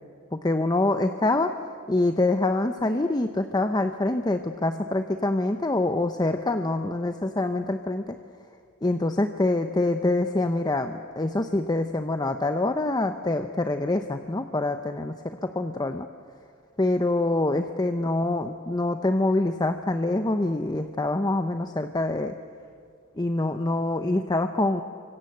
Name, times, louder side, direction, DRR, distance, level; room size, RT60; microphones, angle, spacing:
voice 1, 0.3-1.5 1.9-8.1 8.8-16.1 16.8-22.3 23.2-24.8, left 2 dB, 20° left, 7 dB, 0.7 m, -25 dB
28.0 x 24.5 x 7.9 m, 2.2 s
head